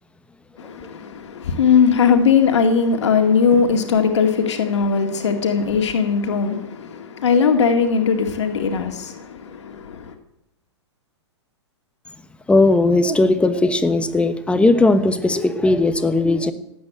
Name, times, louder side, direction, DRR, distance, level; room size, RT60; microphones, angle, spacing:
voice 1, 0.6-10.1, left 6 dB, 70° left, 2.1 m, -19 dB
voice 2, 12.5-16.5, left 2 dB, 5° left, 1.2 m, -17 dB
17.0 x 8.6 x 9.0 m
hypercardioid pair, 120°, 15 cm